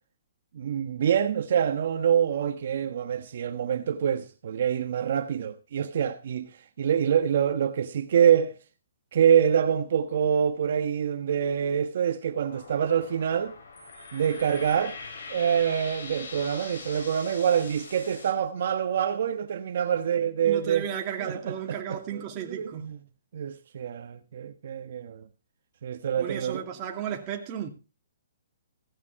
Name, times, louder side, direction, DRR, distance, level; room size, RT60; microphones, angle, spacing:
voice 1, 0.5-6.5 6.8-8.5 9.1-13.5 14.1-15.0 15.3-20.9 21.2-23.0 23.3-25.2 25.8-26.7, right 8 dB, 55° right, 1.3 m, -26 dB
sound 1, 12.5-18.3, left 4 dB, 70° left, 7.8 m, -42 dB
voice 2, 20.4-22.9 26.2-27.7, right 9 dB, 25° right, 2.4 m, -34 dB
16.5 x 9.4 x 4.7 m
hypercardioid pair, 165°, 0 cm